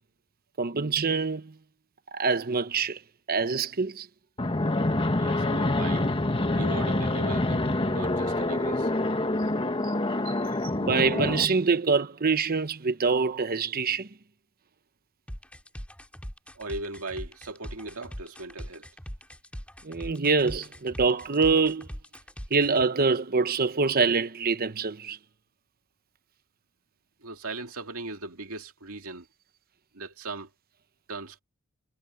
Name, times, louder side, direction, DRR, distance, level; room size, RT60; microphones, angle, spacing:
voice 1, 0.6-1.5 2.1-3.0 3.3-4.1 9.8-9.9 10.3-10.4 10.8-14.1 19.8-21.9 22.5-25.2, right 4 dB, 45° right, 0.9 m, -25 dB
Fixed-wing aircraft airplane, 4.4-11.4, left 2 dB, 25° left, 1.3 m, -26 dB
voice 2, 5.2-6.1 6.5-8.9 10.6-10.7 16.5-18.9 27.2-29.3 29.9-30.5 31.1-31.4, right 2 dB, 70° right, 2.5 m, -38 dB
sound 1, 15.3-22.8, equal, 5° left, 2.4 m, -41 dB
head